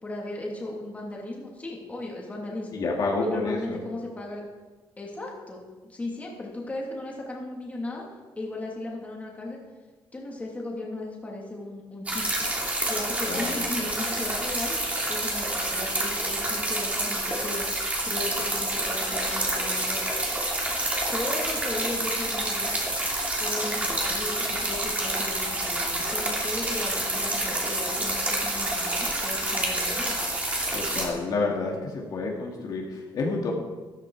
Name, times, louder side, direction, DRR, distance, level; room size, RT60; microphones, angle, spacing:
voice 1, 0.0-2.8 3.2-4.4 5.0-8.0 8.4-9.6 10.1-12.5 12.9-20.0 21.1-22.7 23.4-30.2, left 2 dB, 15° left, -2 dB, 2.8 m, -36 dB
voice 2, 2.7-3.8 13.3-13.7 30.7-33.5, left 3 dB, 55° left, -1 dB, 2.3 m, -29 dB
sound 1, 12.1-31.1, right 1 dB, 15° right, 2.9 m, -28 dB
14.0 x 13.5 x 4.9 m, 1.3 s
cardioid pair, 150°, 8 cm